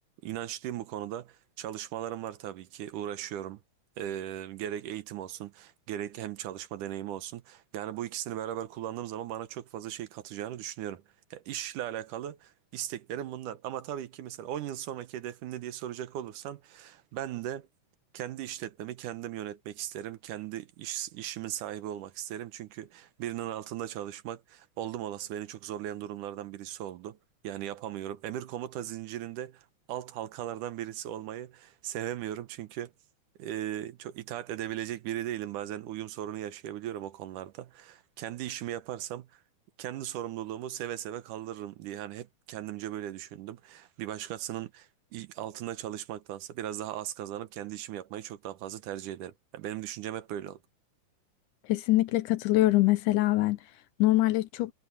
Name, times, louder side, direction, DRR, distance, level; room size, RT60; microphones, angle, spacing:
voice 1, 0.2-3.6 4.0-11.0 11.3-17.7 18.1-27.2 27.4-32.9 33.4-39.4 39.8-50.6, right 12 dB, 75° right, 2.4 m, -38 dB
voice 2, 51.7-53.6 54.0-54.7, left 17 dB, 80° left, 2.2 m, -24 dB
omnidirectional pair, 3.8 m